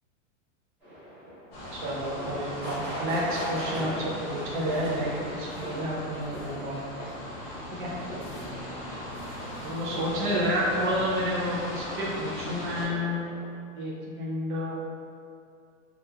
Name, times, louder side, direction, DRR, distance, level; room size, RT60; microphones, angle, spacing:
sound 1, 0.8-13.5, equal, 5° right, 0.8 m, -40 dB
sound 2, 1.5-12.8, left 1 dB, 40° left, 0.8 m, -39 dB
voice 1, 1.7-6.8 7.7-7.9 9.6-13.4 13.7-14.8, equal, 40° right, -4 dB, 0.5 m, -30 dB
2.9 x 2.4 x 2.2 m, 2.4 s
supercardioid pair, 165°, 38 cm